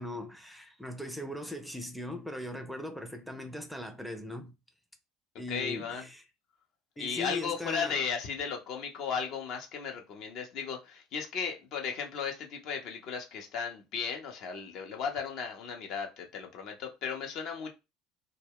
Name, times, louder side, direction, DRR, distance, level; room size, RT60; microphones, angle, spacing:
voice 1, 0.0-4.6 5.4-6.2 7.0-8.0, left 1 dB, ahead, 0.4 m, -39 dB
voice 2, 5.5-6.0 7.0-17.7, left 6 dB, 55° left, 0.6 m, -35 dB
2.3 x 2.1 x 3.4 m
hypercardioid pair, 70°, 0 cm